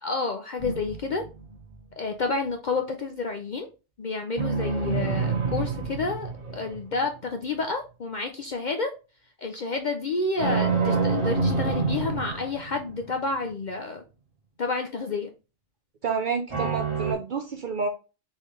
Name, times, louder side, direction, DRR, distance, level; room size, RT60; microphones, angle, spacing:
voice 1, 0.0-1.2 2.0-3.7 4.0-8.9 9.4-14.0 14.6-15.3, left 3 dB, 55° left, 0.5 m, -30 dB
sound 1, 0.6-1.7 4.4-7.1 10.4-13.1 16.5-17.1, right 4 dB, 25° right, 1.1 m, -27 dB
voice 2, 16.0-17.9, right 5 dB, 55° right, 0.6 m, -29 dB
4.1 x 3.7 x 3.1 m
omnidirectional pair, 1.3 m